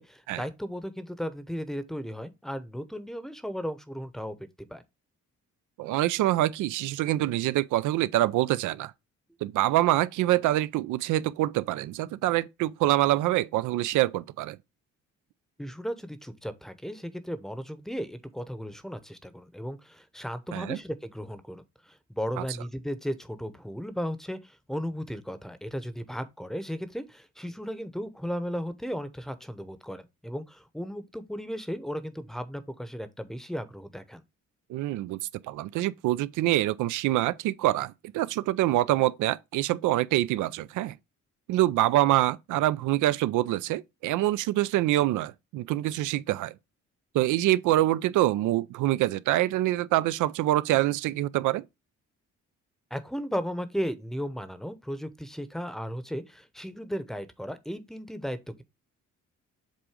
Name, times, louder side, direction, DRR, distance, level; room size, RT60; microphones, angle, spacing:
voice 1, 0.0-4.8 15.6-34.2 52.9-58.6, equal, ahead, 0.8 m, -35 dB
voice 2, 5.8-8.9 9.4-14.6 20.5-20.8 22.4-22.5 34.7-35.2 35.5-41.0 41.5-46.5 47.1-51.6, right 15 dB, 80° right, 0.5 m, -25 dB
7.6 x 2.6 x 4.8 m
cardioid pair, 90°, 30 cm